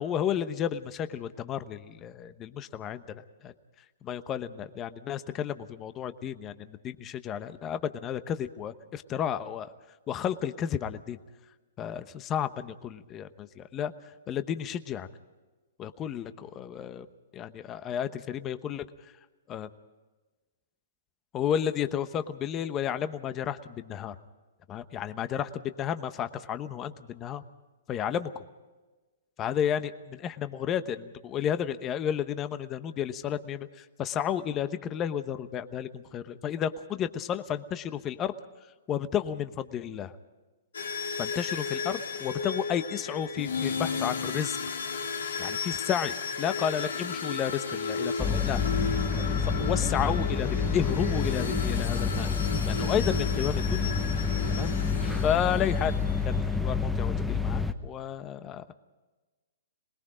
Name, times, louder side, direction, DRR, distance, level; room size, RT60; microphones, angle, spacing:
voice 1, 0.0-3.0 3.4-3.5 4.0-9.7 10.1-11.2 11.8-13.9 14.3-15.1 15.8-17.1 17.3-18.8 19.5-19.7 21.3-24.1 24.7-25.5 25.8-27.4 27.9-28.3 29.4-38.3 38.9-40.1 41.2-44.6 45.4-48.6 49.6-52.3 52.6-53.9 54.5-54.7 55.2-55.9 56.2-58.7, left 9 dB, 25° left, 11 dB, 1.0 m, -32 dB
sound 1, 40.7-56.4, left 5 dB, 90° left, 2.7 m, -34 dB
sound 2, 48.2-57.7, left 5 dB, ahead, 1.1 m, -28 dB
27.0 x 20.5 x 5.0 m, 1.2 s
hypercardioid pair, 145°, 0 cm